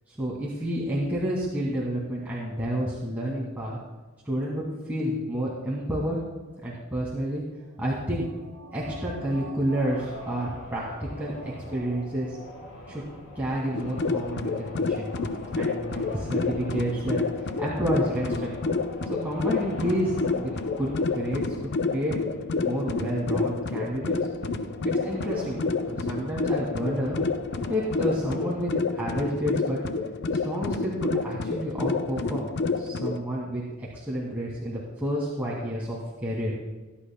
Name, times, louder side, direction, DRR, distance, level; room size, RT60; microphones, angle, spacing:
voice 1, 0.1-3.8 4.3-6.2 6.6-7.4 7.8-8.3 8.7-12.4 12.9-13.0 13.4-15.1 15.5-17.2 17.6-18.5 19.2-22.1 22.6-24.1 24.9-27.2 27.7-29.8 30.4-32.5 32.8-36.5, equal, 10° right, -7 dB, 2.2 m, -30 dB
sound 1, 7.7-12.5 12.8-12.9, right 3 dB, 70° right, 2.1 m, -46 dB
sound 2, 9.8-28.6, left 1 dB, 85° left, 4.2 m, -44 dB
sound 3, 13.7-33.2, left 4 dB, 55° left, 0.6 m, -29 dB
20.0 x 11.5 x 2.2 m, 1.2 s
head